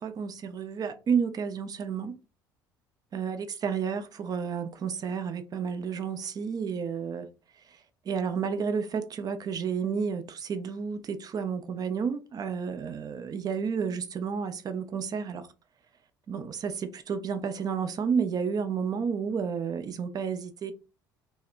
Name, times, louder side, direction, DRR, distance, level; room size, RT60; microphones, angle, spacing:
voice 1, 0.0-2.2 3.1-7.3 7.5-15.5 16.3-20.7, right 6 dB, 35° right, 0.4 m, -31 dB
2.8 x 2.1 x 2.3 m
hypercardioid pair, 60°, 11 cm